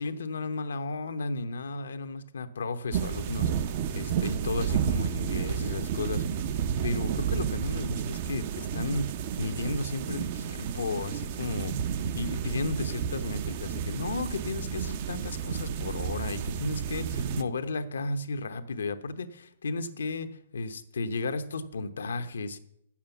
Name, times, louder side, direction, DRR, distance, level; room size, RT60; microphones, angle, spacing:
voice 1, 0.0-3.7 3.9-6.3 6.8-11.8 12.1-22.6, left 3 dB, 85° left, 9 dB, 0.9 m, -34 dB
sound 1, 2.9-17.4, right 8 dB, 50° right, 0.6 m, -31 dB
9.0 x 7.3 x 7.1 m, 0.76 s
hypercardioid pair, 140°, 0 cm